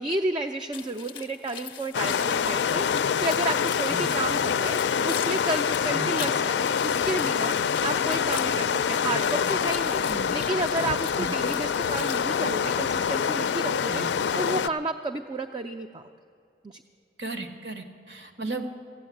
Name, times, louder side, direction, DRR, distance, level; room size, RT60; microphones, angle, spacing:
voice 1, 0.0-16.0 16.6-16.8, right 2 dB, 25° right, 6 dB, 0.4 m, -32 dB
sound 1, 0.7-12.2, left 9 dB, 30° left, 0.6 m, -41 dB
sound 2, 1.9-14.7, left 7 dB, 85° left, 0.4 m, -26 dB
voice 2, 17.2-18.8, right 3 dB, 80° right, 7 dB, 1.4 m, -35 dB
15.5 x 8.5 x 8.4 m, 2.5 s
head